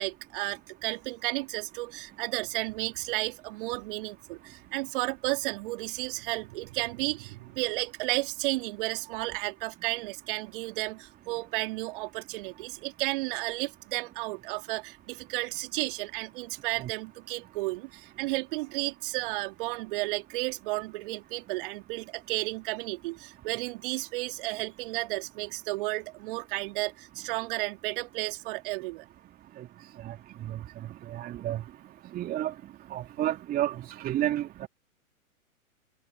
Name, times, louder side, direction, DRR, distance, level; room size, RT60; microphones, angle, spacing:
voice 1, 0.0-29.0, right 22 dB, 35° right, 3.2 m, -33 dB
voice 2, 31.1-31.6 32.1-32.5 32.9-34.7, right 13 dB, 20° right, 2.7 m, -31 dB
figure-of-eight pair, 115°, 43 cm